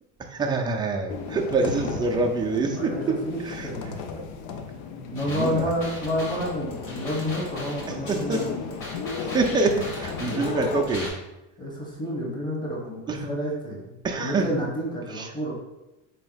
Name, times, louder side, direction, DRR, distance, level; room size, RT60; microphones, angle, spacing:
voice 1, 0.2-4.2 5.3-5.7 7.9-8.5 9.2-11.1 13.1-13.3 14.0-14.5 15.1-15.3, right 3 dB, 10° right, 2 dB, 0.3 m, -26 dB
sound 1, 1.1-10.8, left 5 dB, 75° left, 0.6 m, -35 dB
voice 2, 2.8-4.0 5.1-8.5 11.6-15.5, equal, 10° left, -2 dB, 1.1 m, -30 dB
sound 2, 5.1-11.1, left 1 dB, 35° left, 1.4 m, -39 dB
4.2 x 2.8 x 3.9 m, 0.99 s
cardioid pair, 130°, 37 cm